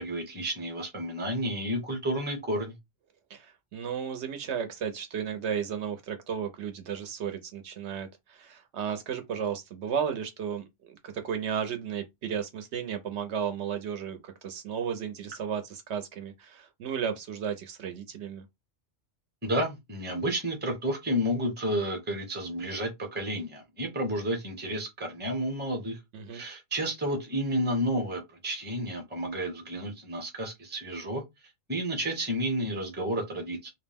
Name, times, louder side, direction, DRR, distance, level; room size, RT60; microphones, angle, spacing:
voice 1, 0.0-2.7 19.4-26.0 26.3-31.2 31.7-33.7, equal, 10° right, 0.6 m, -31 dB
voice 2, 3.3-18.4 26.1-26.4, right 7 dB, 70° right, 0.8 m, -34 dB
2.5 x 2.0 x 3.3 m
omnidirectional pair, 1.3 m